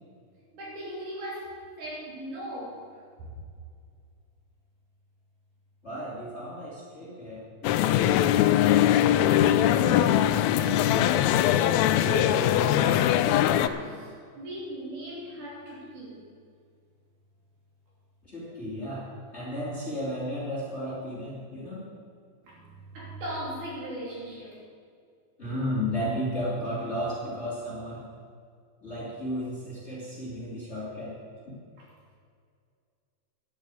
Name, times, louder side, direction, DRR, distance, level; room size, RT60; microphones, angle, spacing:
voice 1, 0.5-2.8 3.2-3.3 11.9-14.1 14.4-16.2 22.4-24.6, right 1 dB, 70° right, -5 dB, 4.7 m, -38 dB
voice 2, 5.8-11.0 18.2-21.8 25.4-28.0 28.8-31.1, equal, 20° left, -7 dB, 2.8 m, -34 dB
sound 1, 7.6-13.7, left 12 dB, 90° left, 1.6 m, -21 dB
11.0 x 7.8 x 8.3 m, 2.2 s
omnidirectional pair, 3.7 m